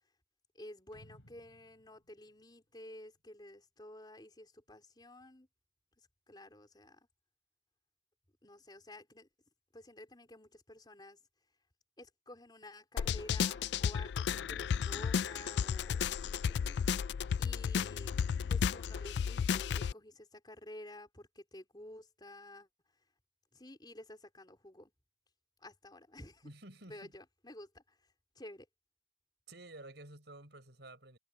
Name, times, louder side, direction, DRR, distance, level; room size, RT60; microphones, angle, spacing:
voice 1, 0.5-5.5 6.3-7.0 8.4-9.3 9.7-11.2 12.0-16.8 17.4-18.2 18.5-22.7 23.5-24.9 25.6-26.5 26.9-28.0 28.4-28.7, left 1 dB, 20° left, 4.1 m, -52 dB
sound 1, 0.9-3.4, equal, 85° left, 4.6 m, -62 dB
sound 2, 13.0-19.9, left 7 dB, 60° left, 0.3 m, -33 dB
voice 2, 26.4-27.1 29.5-31.2, right 2 dB, 60° right, 6.8 m, -52 dB
head